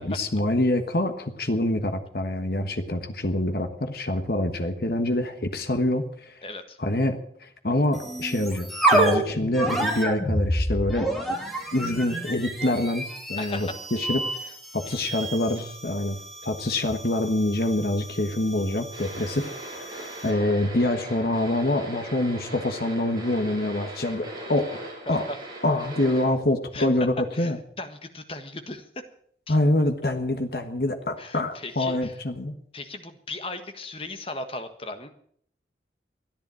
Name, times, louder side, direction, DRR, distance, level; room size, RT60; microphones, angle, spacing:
voice 1, 0.0-6.4 6.8-11.4 11.7-24.8 25.1-25.3 25.6-27.6 29.5-32.5, left 1 dB, 60° left, 7 dB, 1.4 m, -26 dB
voice 2, 6.4-6.8 13.4-13.7 14.9-15.0 25.1-25.2 26.7-26.9 27.3-27.5 27.8-29.0 29.5-29.6 31.2-32.1 32.7-35.1, left 2 dB, 30° left, 8 dB, 1.5 m, -37 dB
sound 1, 7.9-20.4, right 1 dB, ahead, 2.7 m, -29 dB
sound 2, 18.9-26.2, right 1 dB, 25° right, 6.5 m, -39 dB
14.0 x 10.5 x 8.7 m, 0.63 s
head